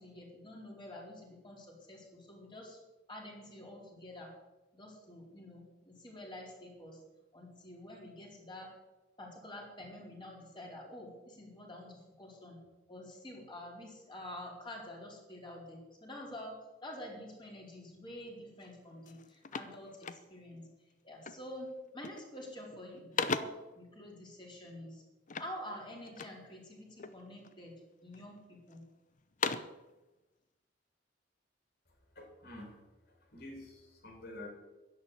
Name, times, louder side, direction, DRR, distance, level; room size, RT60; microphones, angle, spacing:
voice 1, 0.0-2.8 3.1-4.3 4.7-7.0 7.3-8.7 9.2-20.7 21.0-21.7 21.9-25.0 25.4-27.7 28.0-28.8, left 1 dB, 25° left, -2 dB, 4.4 m, -48 dB
sound 1, 18.6-18.8 19.0-20.6 21.2-21.6 21.9-22.4 22.7-23.8 25.3-26.5 27.0-27.6 28.1-28.8 29.2-29.9, left 5 dB, 45° left, 0.8 m, -39 dB
voice 2, 32.2-32.8 33.3-34.5, left 1 dB, 60° left, 1 dB, 4.2 m, -48 dB
11.5 x 11.0 x 8.1 m, 1.1 s
head